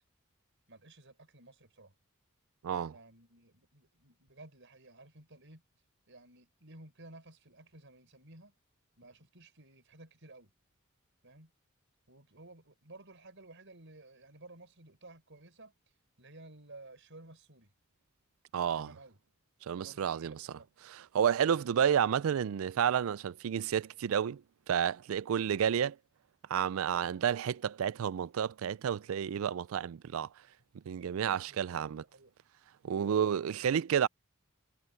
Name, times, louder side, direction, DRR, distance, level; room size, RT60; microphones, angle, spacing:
voice 1, 0.7-1.9 2.9-5.6 6.1-8.5 9.0-10.5 11.2-11.5 12.1-15.7 16.2-17.7 18.6-19.2 19.8-20.7 31.5-32.3, right 2 dB, 60° right, 5.9 m, -55 dB
voice 2, 2.6-2.9 18.5-18.9 19.6-20.4 20.9-24.4 24.7-26.0 26.5-30.3 30.9-32.0 32.8-34.1, right 8 dB, 80° right, 0.4 m, -30 dB
head